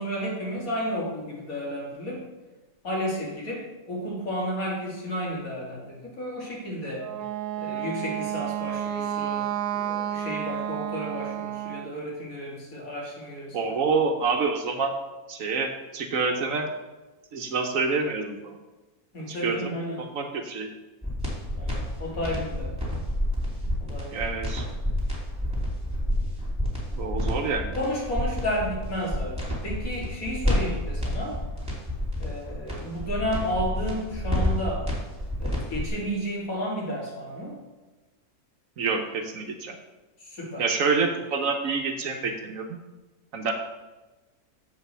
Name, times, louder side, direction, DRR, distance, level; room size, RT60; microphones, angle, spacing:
voice 1, 0.0-2.2 2.8-7.1 7.6-13.7 19.1-20.1 21.6-22.7 23.8-24.2 27.8-31.4 32.2-34.9 35.4-37.5 40.2-40.7, equal, 65° left, -3 dB, 2.8 m, -32 dB
Wind instrument woodwind instrument, 6.9-11.9, right 11 dB, 85° right, 1.2 m, -31 dB
voice 2, 13.5-14.9 15.3-16.7 17.3-18.6 19.3-20.7 24.1-24.7 26.9-27.7 38.8-39.8 40.6-42.8 43.3-43.5, right 4 dB, 65° right, 5 dB, 1.2 m, -27 dB
sound 1, 21.0-35.9, left 1 dB, 5° right, 2.7 m, -29 dB
7.5 x 5.5 x 6.1 m, 1.2 s
omnidirectional pair, 1.6 m